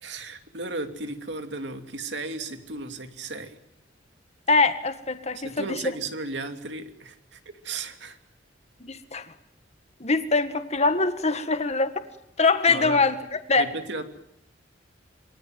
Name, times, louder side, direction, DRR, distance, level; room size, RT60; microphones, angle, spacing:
voice 1, 0.0-3.6 5.3-8.2 12.7-13.0 13.6-14.0, right 3 dB, 70° right, 6 dB, 2.8 m, -35 dB
voice 2, 4.5-5.8 8.8-9.3 10.0-11.9 12.4-13.7, left 3 dB, 35° left, 9 dB, 1.8 m, -23 dB
27.5 x 23.0 x 7.7 m, 0.80 s
head